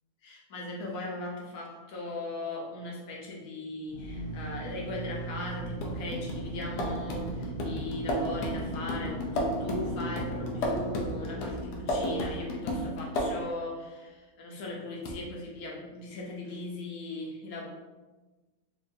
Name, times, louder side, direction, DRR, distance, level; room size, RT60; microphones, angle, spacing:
voice 1, 0.2-17.6, left 2 dB, 65° left, -2 dB, 1.2 m, -39 dB
Drill, 3.9-12.5, right 1 dB, 80° right, 0.5 m, -38 dB
sound 1, 5.8-13.6 15.1-15.2, equal, 90° left, 1.2 m, -33 dB
4.4 x 2.6 x 2.6 m, 1.2 s
omnidirectional pair, 1.7 m